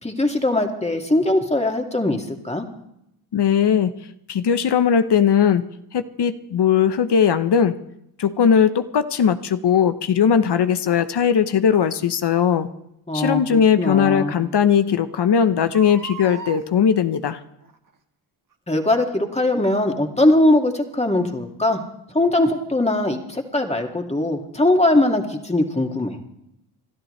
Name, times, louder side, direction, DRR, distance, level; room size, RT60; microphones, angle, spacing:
voice 1, 0.0-2.7 13.1-14.3 18.7-21.8 22.1-26.2, left 1 dB, 15° left, 3 dB, 2.3 m, -21 dB
voice 2, 3.3-4.0 4.3-5.7 5.9-7.8 8.2-12.7 13.1-17.4, left 7 dB, 55° left, 11 dB, 1.1 m, -19 dB
Crying sobbing, 9.1-9.3 11.7-11.9 13.5-13.6 14.1-14.2 14.4-14.5 15.6-16.7 17.6-17.9 18.5-18.6, right 5 dB, 40° right, 1.7 m, -38 dB
28.0 x 12.5 x 3.3 m, 0.80 s
supercardioid pair, 55°, 50 cm